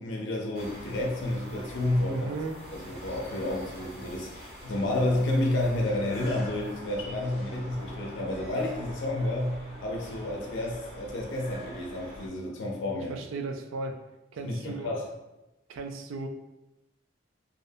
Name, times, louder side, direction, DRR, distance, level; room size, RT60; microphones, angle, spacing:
voice 1, 0.0-2.3 2.7-13.2 14.4-15.1, left 1 dB, 65° left, -1 dB, 0.4 m, -30 dB
sound 1, 0.5-12.3, equal, 55° right, 0.7 m, -44 dB
voice 2, 2.1-2.6 13.1-14.0 14.3-15.0 15.7-16.3, right 3 dB, 90° right, 5 dB, 0.3 m, -35 dB
2.4 x 2.1 x 2.6 m, 0.98 s
head